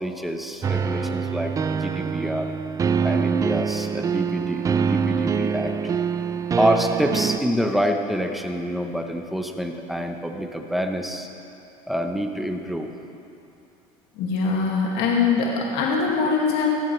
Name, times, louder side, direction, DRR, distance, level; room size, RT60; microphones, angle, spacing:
voice 1, 0.0-2.5 3.0-5.9 6.6-11.3 11.9-12.9, equal, ahead, 4 dB, 1.0 m, -27 dB
sound 1, 0.6-7.4, right 6 dB, 20° right, 0.3 m, -24 dB
voice 2, 14.2-16.7, left 5 dB, 60° left, -3 dB, 2.3 m, -22 dB
17.5 x 13.5 x 3.4 m, 2.7 s
supercardioid pair, 115°, 19 cm